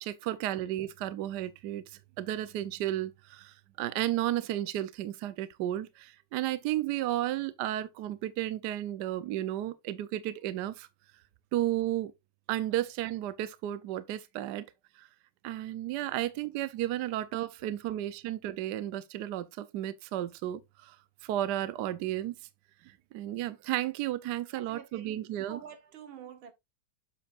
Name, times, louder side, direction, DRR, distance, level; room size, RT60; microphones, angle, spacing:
voice 1, 0.0-10.9 11.5-12.1 12.5-14.7 15.0-15.1 15.4-21.0 21.2-22.4 22.8-25.6, right 13 dB, 70° right, 1.1 m, -33 dB
voice 2, 24.5-25.1 25.5-26.5, right 8 dB, 85° right, 2.0 m, -48 dB
7.4 x 7.4 x 2.5 m
omnidirectional pair, 2.2 m